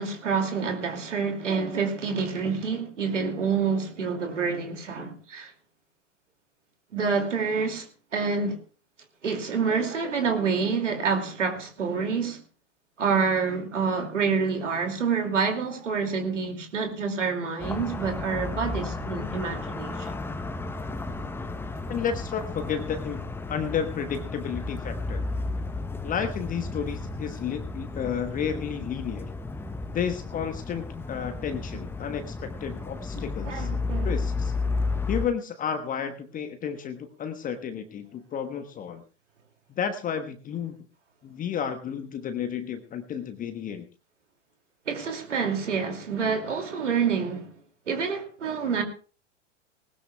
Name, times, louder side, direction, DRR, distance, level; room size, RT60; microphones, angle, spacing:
voice 1, 0.0-5.5 6.9-7.9 8.1-8.6 9.2-12.4 13.0-20.1 33.4-34.1 44.9-47.5 47.9-48.8, right 5 dB, 75° right, 2.6 m, -27 dB
sound 1, 17.6-35.3, left 3 dB, 5° left, 0.9 m, -33 dB
voice 2, 21.9-25.2 26.0-29.3 29.9-33.7 34.0-34.5 35.1-39.0 39.7-40.8 41.2-43.9, left 7 dB, 20° left, 1.2 m, -32 dB
19.5 x 19.5 x 2.3 m
figure-of-eight pair, 95°, 37 cm